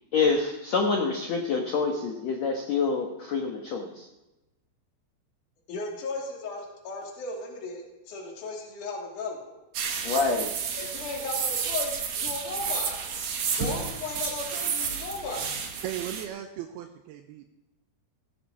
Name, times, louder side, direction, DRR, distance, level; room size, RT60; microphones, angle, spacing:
voice 1, 0.1-4.1 10.0-10.5, left 4 dB, 85° left, 2 dB, 1.5 m, -27 dB
voice 2, 5.7-9.6 10.8-13.0 13.6-15.7, left 3 dB, 50° left, -1 dB, 4.0 m, -36 dB
sound 1, 9.7-16.2, right 6 dB, 60° right, 1.8 m, -31 dB
voice 3, 15.8-17.5, right 12 dB, 80° right, 5 dB, 2.3 m, -37 dB
17.0 x 12.5 x 4.8 m, 0.99 s
omnidirectional pair, 5.1 m